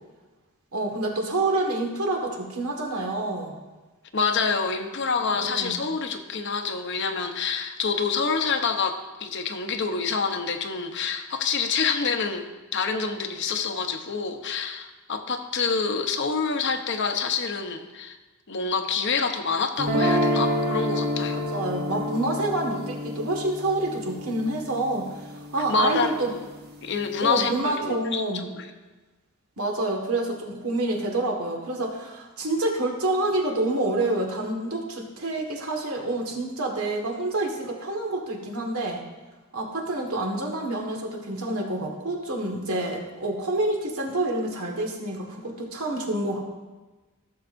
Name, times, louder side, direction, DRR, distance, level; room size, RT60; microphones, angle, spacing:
voice 1, 0.7-3.6 5.4-5.8 21.3-26.3 27.2-28.5 29.6-39.0 39.5-46.4, right 2 dB, 80° right, 1 dB, 1.7 m, -28 dB
voice 2, 4.1-12.5 12.7-18.2 18.5-21.4 25.7-26.4 26.8-28.7, left 5 dB, 55° left, 7 dB, 0.8 m, -27 dB
sound 1, 19.8-25.9, equal, 45° right, 1.0 m, -28 dB
16.0 x 7.2 x 2.6 m, 1.2 s
head